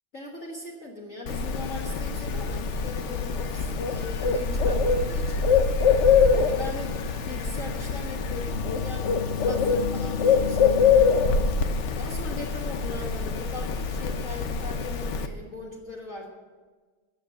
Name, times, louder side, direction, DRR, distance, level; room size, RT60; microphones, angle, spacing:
voice 1, 0.1-5.5 6.4-7.0 7.2-10.9 11.9-16.3, left 2 dB, 40° left, -1 dB, 1.7 m, -39 dB
Bird, 1.3-15.3, left 5 dB, 65° left, 0.7 m, -24 dB
15.0 x 7.2 x 7.2 m, 1.4 s
omnidirectional pair, 2.2 m